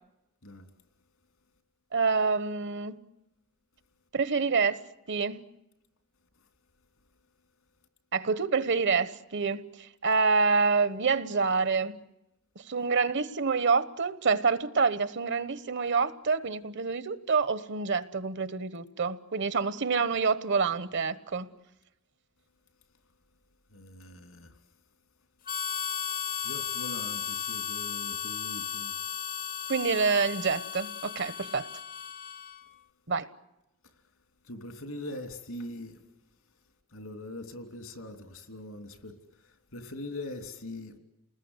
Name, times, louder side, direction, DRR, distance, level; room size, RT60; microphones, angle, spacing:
voice 1, 1.9-3.0 4.1-4.8 5.1-5.4 8.1-12.0 12.7-21.5 29.7-31.7 33.1-33.3, right 4 dB, 55° right, 1.1 m, -27 dB
voice 2, 23.7-24.5 26.4-29.0 34.4-36.0 36.9-41.0, left 1 dB, 80° left, 3.2 m, -42 dB
Harmonica, 25.5-32.7, left 8 dB, 40° left, 0.9 m, -35 dB
29.5 x 20.0 x 8.1 m
head